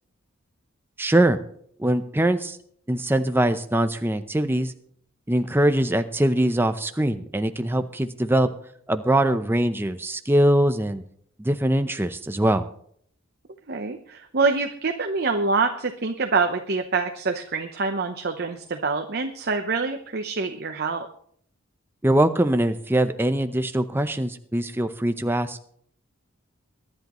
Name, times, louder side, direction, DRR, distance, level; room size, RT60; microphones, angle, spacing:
voice 1, 1.0-1.4 1.8-2.6 2.9-4.7 5.3-8.5 8.9-11.0 11.4-12.6 22.0-25.6, right 1 dB, 10° right, 9 dB, 0.6 m, -22 dB
voice 2, 13.7-21.1, right 4 dB, 50° right, 5 dB, 0.8 m, -25 dB
23.0 x 10.5 x 3.1 m, 0.64 s
head